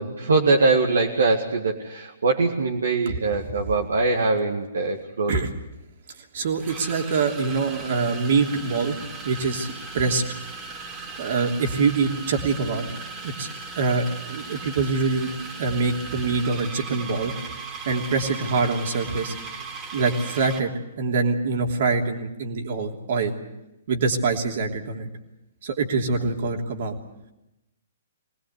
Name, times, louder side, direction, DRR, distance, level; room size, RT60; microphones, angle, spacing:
voice 1, 0.0-5.4, right 3 dB, 70° right, 1 dB, 2.0 m, -22 dB
voice 2, 3.0-3.5 5.3-5.5 6.3-9.0 9.2-10.2 11.2-12.8 13.2-13.5 13.7-15.3 15.6-17.3 17.8-19.3 19.9-20.7 21.0-23.3 23.9-25.1 25.6-27.0, right 4 dB, 55° right, 3 dB, 3.2 m, -24 dB
sound 1, 6.6-20.7, right 4 dB, 25° right, 3.0 m, -38 dB
24.5 x 19.5 x 8.2 m, 0.94 s
figure-of-eight pair, 120°, 0 cm